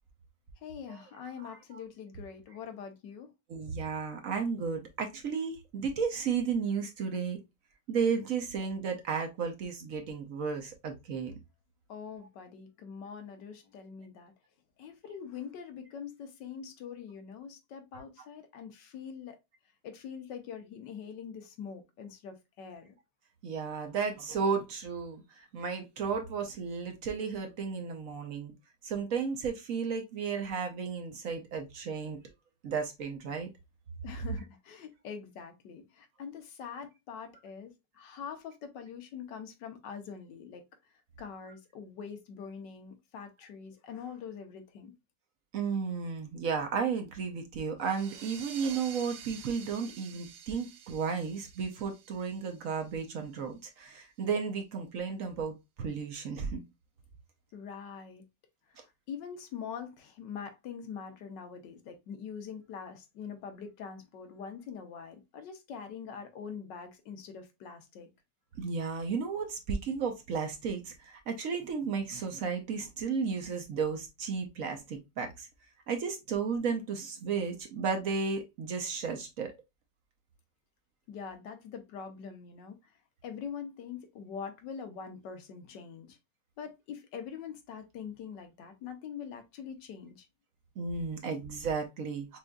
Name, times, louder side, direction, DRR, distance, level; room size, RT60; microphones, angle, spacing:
voice 1, 0.6-3.3 11.9-14.3 14.8-19.4 19.8-22.9 34.0-40.6 41.2-44.9 57.5-58.2 59.1-68.1 81.1-82.8 83.2-86.2 86.6-90.3, left 7 dB, 90° left, 1.5 m, -44 dB
voice 2, 1.4-1.8 3.5-7.4 7.9-11.3 23.4-28.5 28.8-32.2 32.6-33.5 45.5-56.6 68.6-75.5 75.9-79.5 90.8-92.4, right 5 dB, 60° right, 1.0 m, -33 dB
sound 1, 47.8-53.1, right 8 dB, 90° right, 1.3 m, -49 dB
6.1 x 2.6 x 2.2 m
omnidirectional pair, 1.9 m